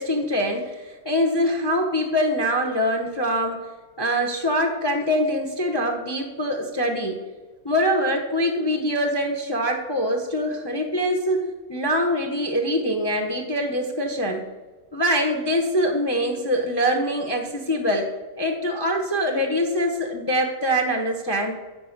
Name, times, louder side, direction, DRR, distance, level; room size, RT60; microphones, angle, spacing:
voice 1, 0.0-3.6 4.0-7.2 7.6-14.4 14.9-18.1 18.4-21.5, equal, 20° left, 2 dB, 0.8 m, -24 dB
9.7 x 6.8 x 6.5 m, 1.3 s
omnidirectional pair, 1.6 m